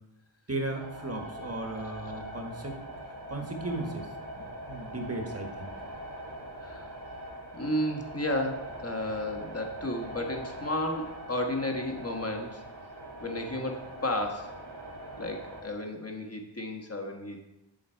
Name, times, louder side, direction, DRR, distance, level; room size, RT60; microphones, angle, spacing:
voice 1, 0.5-2.8 3.3-4.1 4.4-5.7, right 2 dB, 30° right, 2 dB, 1.3 m, -36 dB
sound 1, 0.8-15.6, right 1 dB, 65° right, 2.2 m, -42 dB
voice 2, 6.6-6.9 7.5-12.6 13.2-14.5 15.2-17.4, left 1 dB, 30° left, 3 dB, 1.3 m, -33 dB
7.9 x 7.4 x 4.5 m, 0.96 s
wide cardioid pair, 80°, 45 cm